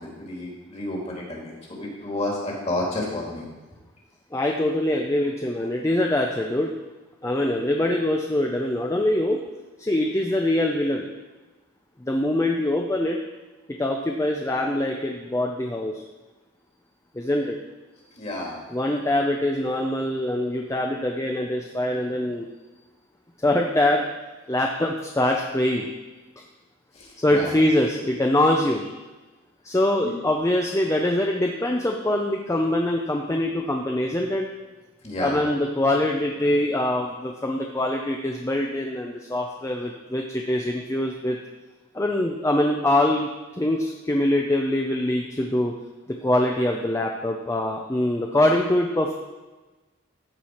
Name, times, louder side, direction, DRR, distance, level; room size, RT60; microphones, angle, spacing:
voice 1, 0.0-3.5 18.2-18.6 26.9-27.6 35.0-35.4, left 1 dB, 30° left, -2 dB, 2.1 m, -31 dB
voice 2, 4.3-6.7 7.2-9.4 9.8-11.1 12.1-13.2 13.8-16.0 17.1-17.6 18.7-22.5 23.4-24.0 24.5-25.9 27.2-28.9 29.6-34.5 35.2-41.4 41.9-43.3 43.6-45.7 46.1-49.1, left 1 dB, 15° left, 1 dB, 0.5 m, -23 dB
14.0 x 4.7 x 4.4 m, 1.2 s
head